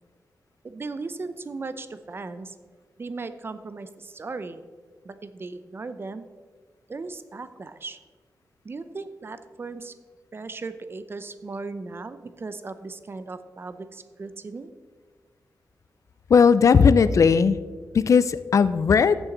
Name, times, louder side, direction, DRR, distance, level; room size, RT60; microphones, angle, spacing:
voice 1, 0.6-2.6 3.0-4.6 5.0-6.3 6.9-8.0 8.6-9.9 10.3-14.7, right 3 dB, 35° right, 12 dB, 0.6 m, -37 dB
voice 2, 16.3-17.6 17.9-19.2, left 6 dB, 50° left, 14 dB, 0.4 m, -17 dB
14.0 x 7.1 x 3.9 m, 1.5 s
wide cardioid pair, 130°, 7 cm